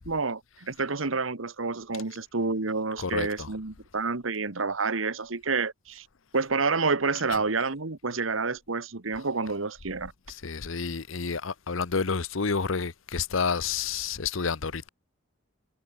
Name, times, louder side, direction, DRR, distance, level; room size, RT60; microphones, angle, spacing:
voice 1, 0.0-6.0 6.3-10.1, right 4 dB, 80° right, 1.4 m, -29 dB
voice 2, 3.0-3.5 10.3-14.9, left 5 dB, 80° left, 0.9 m, -29 dB
head